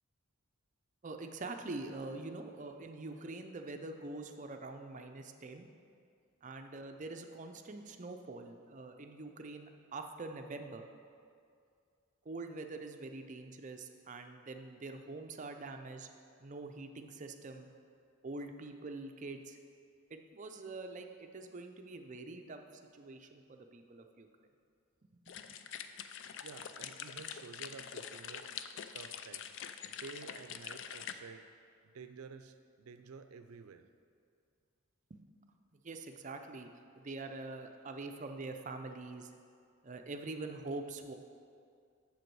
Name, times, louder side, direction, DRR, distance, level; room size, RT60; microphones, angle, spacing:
voice 1, 1.0-5.7 6.4-10.9 12.2-16.1 16.4-17.7 18.2-19.6 20.1-22.6 22.9-24.3 25.1-25.5 35.1-35.2 35.8-36.7 37.0-39.3 39.8-41.1, right 3 dB, 35° right, 5 dB, 0.5 m, -45 dB
sound 1, 25.3-31.1, left 8 dB, 55° left, 0.3 m, -45 dB
voice 2, 26.4-28.5 28.9-29.5 29.8-31.5 31.8-33.9, right 5 dB, 90° right, 9 dB, 0.5 m, -51 dB
7.9 x 7.0 x 4.6 m, 2.3 s
head